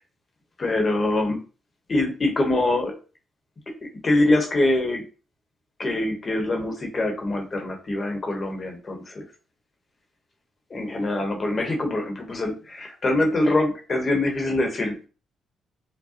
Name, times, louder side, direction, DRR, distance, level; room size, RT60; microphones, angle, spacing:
voice 1, 0.6-1.4 1.9-2.9 3.7-5.1 5.8-9.3 10.7-15.1, left 2 dB, 35° left, 3 dB, 1.0 m, -24 dB
4.8 x 2.1 x 2.8 m, 0.35 s
cardioid pair, 90°, 0 cm